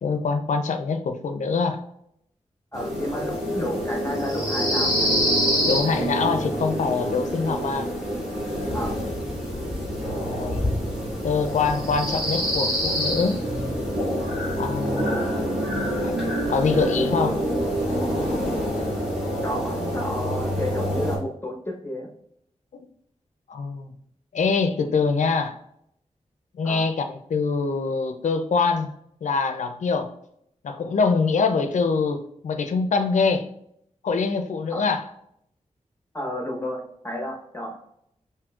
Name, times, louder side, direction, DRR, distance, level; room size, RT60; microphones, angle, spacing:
voice 1, 0.0-1.8 5.6-7.9 10.1-10.7 11.2-13.4 14.6-16.1 16.5-17.4 23.5-23.9 24.3-25.5 26.5-28.9 29.2-30.1 30.6-33.5 34.0-35.0, left 4 dB, 75° left, 7 dB, 0.4 m, -24 dB
voice 2, 2.7-5.1 8.7-9.0 19.4-22.1 26.6-26.8 34.7-34.8 36.1-37.8, left 1 dB, 15° left, 0 dB, 0.9 m, -31 dB
sound 1, 2.7-21.2, equal, 5° right, 1.4 m, -26 dB
5.1 x 2.7 x 2.4 m, 0.72 s
wide cardioid pair, 110°, 12 cm